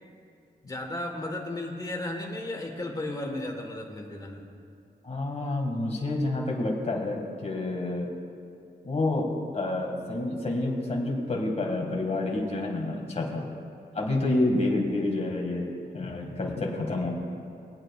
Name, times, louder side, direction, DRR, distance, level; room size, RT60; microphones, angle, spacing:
voice 1, 0.7-4.4, left 1 dB, 20° left, 1 dB, 1.4 m, -34 dB
voice 2, 5.0-8.1 8.8-13.5 13.9-17.1, left 2 dB, 40° left, 0 dB, 2.0 m, -28 dB
22.0 x 8.9 x 2.4 m, 2.5 s
wide cardioid pair, 140°, 17 cm